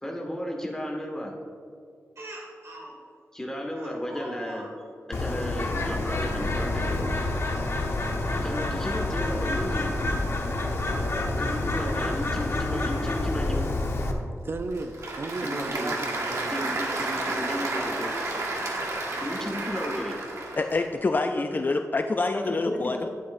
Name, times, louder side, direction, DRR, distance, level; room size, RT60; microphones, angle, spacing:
voice 1, 0.0-1.3 3.3-4.7 5.1-7.0 8.4-9.9 11.4-13.7 15.4-15.9 16.5-18.1 19.2-20.2 21.4-21.6 22.3-23.1, equal, 10° left, -1 dB, 1.6 m, -33 dB
Speech, 2.2-2.9 3.8-4.7 5.7-6.0 7.2-7.5 7.9-8.0 9.7-9.8 10.6-11.5 12.8-12.9 13.2-13.3 15.2-15.3 15.9-16.2 17.3-20.6, right 1 dB, 65° right, 2.0 m, -43 dB
Bird, 5.1-14.1, left 2 dB, 55° left, 1.0 m, -28 dB
voice 2, 14.4-16.8 17.3-17.4, right 3 dB, 50° right, 7 dB, 0.5 m, -35 dB
Applause / Crowd, 14.4-20.9, right 2 dB, 80° right, 1.5 m, -31 dB
voice 3, 20.6-23.1, left 3 dB, 35° left, 6 dB, 0.3 m, -26 dB
12.0 x 9.5 x 2.6 m, 2.4 s
wide cardioid pair, 110°, 5 cm